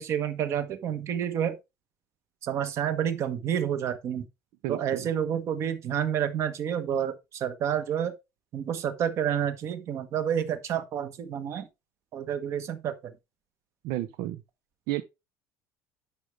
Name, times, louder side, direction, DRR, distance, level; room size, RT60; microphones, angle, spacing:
voice 1, 0.0-1.5 2.4-4.2 4.7-8.1 8.5-11.7 12.1-13.1, right 9 dB, 40° right, 1.2 m, -29 dB
voice 2, 4.6-5.1 13.8-14.4 14.9-15.0, right 15 dB, 70° right, 0.5 m, -32 dB
11.5 x 5.1 x 3.2 m
cardioid pair, 155°, 7 cm